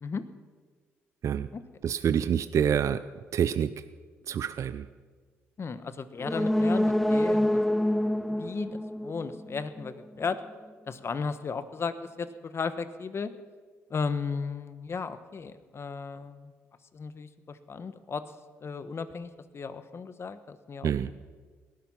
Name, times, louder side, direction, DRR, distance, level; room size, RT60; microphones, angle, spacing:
voice 1, 1.8-3.0 3.3-3.7 4.3-4.9 20.8-21.1, right 8 dB, 60° right, 13 dB, 0.5 m, -26 dB
voice 2, 5.6-7.6 8.3-10.4 10.9-13.3 13.9-16.5 16.9-18.2 18.6-21.1, left 5 dB, 45° left, 12 dB, 1.3 m, -35 dB
sound 1, 6.2-9.9 10.2-10.3, left 1 dB, 5° left, 0.4 m, -27 dB
18.5 x 11.5 x 5.8 m, 1.5 s
supercardioid pair, 55°, 6 cm